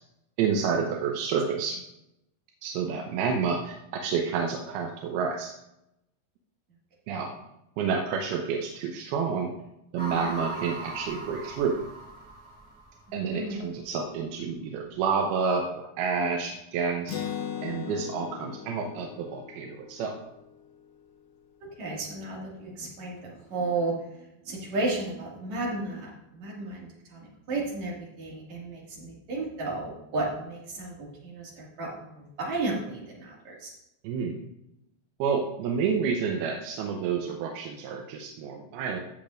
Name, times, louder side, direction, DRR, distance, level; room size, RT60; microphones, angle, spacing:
voice 1, 0.4-1.8 2.6-5.5 7.1-7.3 7.8-9.5 9.9-11.8 13.1-17.2 17.6-20.1 34.0-34.4 35.2-39.0, right 6 dB, 80° right, 2 dB, 2.4 m, -29 dB
sound 1, 10.0-13.3, right 2 dB, 5° left, 1.8 m, -39 dB
Acoustic guitar, 17.1-20.7, left 9 dB, 80° left, 2.1 m, -38 dB
voice 2, 21.8-33.7, right 2 dB, 50° right, -4 dB, 2.9 m, -33 dB
16.0 x 6.7 x 2.5 m, 0.84 s
omnidirectional pair, 5.0 m